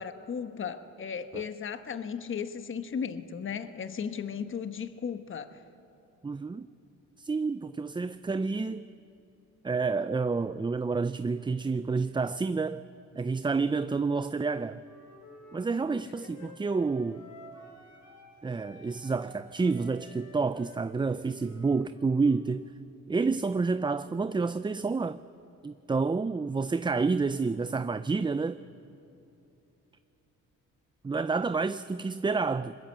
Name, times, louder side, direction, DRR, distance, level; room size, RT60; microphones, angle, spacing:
voice 1, 0.0-5.6, left 7 dB, 40° left, 1.2 m, -36 dB
voice 2, 6.2-6.7 7.2-8.9 9.6-12.8 13.2-14.8 15.5-17.2 18.4-22.7 23.1-25.2 25.6-28.6 31.0-32.8, right 4 dB, 15° right, 0.5 m, -29 dB
Wind instrument woodwind instrument, 14.8-18.3 18.6-22.4, left 1 dB, 75° left, 5.8 m, -52 dB
22.0 x 21.0 x 8.1 m
cardioid pair, 90°, 30 cm